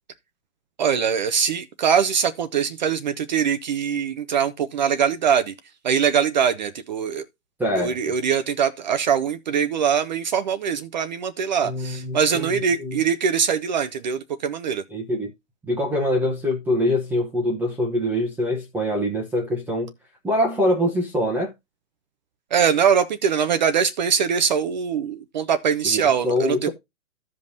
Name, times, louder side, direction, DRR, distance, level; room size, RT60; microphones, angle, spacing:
voice 1, 0.8-5.5 5.8-7.2 7.8-14.8 22.5-26.7, right 7 dB, 35° right, 0.5 m, -22 dB
voice 2, 7.6-7.9 11.6-13.0 14.9-15.3 15.7-19.9 20.2-21.5 25.8-26.7, left 1 dB, 5° right, 0.8 m, -24 dB
15.0 x 5.3 x 2.6 m
hypercardioid pair, 150°, 41 cm